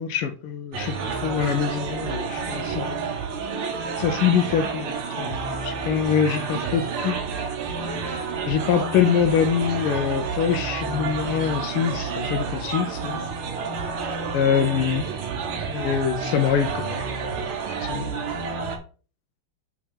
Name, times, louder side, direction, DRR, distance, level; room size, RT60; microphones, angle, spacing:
voice 1, 0.0-3.1 4.0-7.2 8.3-13.3 14.3-15.1 15.6-17.3 17.8-18.3, left 8 dB, 85° left, 1.6 m, -24 dB
sound 1, 0.7-18.8, right 5 dB, 80° right, 2.0 m, -29 dB
6.7 x 3.0 x 5.5 m
omnidirectional pair, 2.4 m